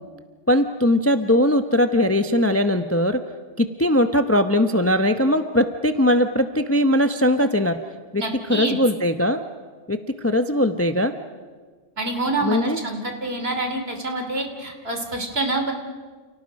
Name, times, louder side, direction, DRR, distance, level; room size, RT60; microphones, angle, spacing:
voice 1, 0.5-3.2 3.6-7.8 8.1-8.2 8.5-9.4 9.9-11.1 12.4-12.8, left 1 dB, 15° left, 8 dB, 0.7 m, -20 dB
voice 2, 8.2-8.8 12.0-15.7, right 2 dB, 55° right, 4 dB, 3.2 m, -26 dB
29.5 x 29.5 x 5.3 m, 1.5 s
omnidirectional pair, 1.3 m